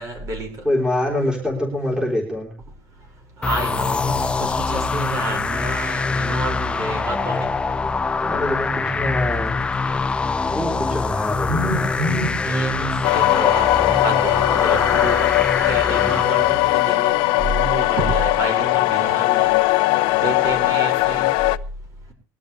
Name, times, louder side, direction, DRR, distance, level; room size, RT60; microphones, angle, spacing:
voice 1, 0.0-0.5 3.4-7.5 9.1-9.4 11.5-13.7 14.0-15.3 15.6-19.5 20.1-21.3, right 2 dB, 40° right, 5.7 m, -28 dB
voice 2, 0.6-2.5 8.2-9.7 10.5-11.9, left 1 dB, 10° right, 3.6 m, -25 dB
sound 1, 3.4-16.9, left 4 dB, 10° left, 0.6 m, -24 dB
sound 2, 13.0-21.6, left 19 dB, 75° left, 0.7 m, -19 dB
21.0 x 12.0 x 3.3 m
cardioid pair, 170°, 8 cm